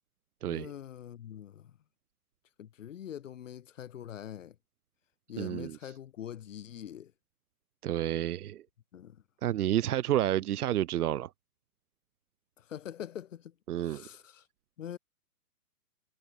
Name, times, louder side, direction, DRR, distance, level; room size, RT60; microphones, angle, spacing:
voice 1, 0.5-1.8 2.6-4.6 5.3-7.1 8.9-9.2 12.6-14.5 14.8-15.0, left 10 dB, 55° left, 1.9 m, -44 dB
voice 2, 5.4-5.8 7.8-8.6 9.4-11.3 13.7-14.0, right 12 dB, 85° right, 0.6 m, -30 dB
hypercardioid pair, 155°, 45 cm